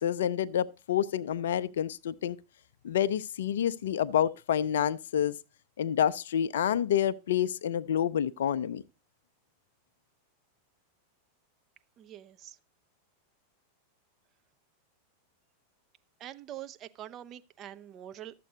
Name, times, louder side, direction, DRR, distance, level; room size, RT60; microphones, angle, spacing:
voice 1, 0.0-2.4 2.8-5.3 5.8-8.8, left 9 dB, 60° left, 0.5 m, -28 dB
voice 2, 12.0-12.3 16.2-18.3, right 11 dB, 30° right, 0.6 m, -44 dB
12.5 x 7.6 x 4.0 m
figure-of-eight pair, 90°, 0 cm